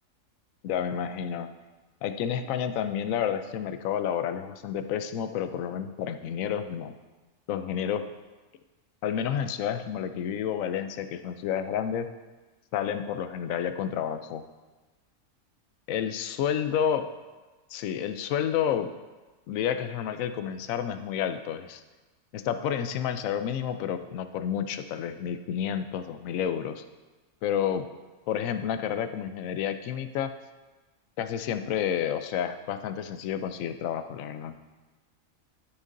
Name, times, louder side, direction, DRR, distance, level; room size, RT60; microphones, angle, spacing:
voice 1, 0.6-1.5 2.0-6.9 7.5-8.1 9.0-12.1 12.7-14.4 15.9-17.0 17.7-18.9 19.5-21.8 22.3-26.8 27.4-27.9 28.3-30.3 31.2-34.6, left 9 dB, 85° left, 10 dB, 1.0 m, -30 dB
12.5 x 6.5 x 2.6 m, 1.2 s
omnidirectional pair, 1.4 m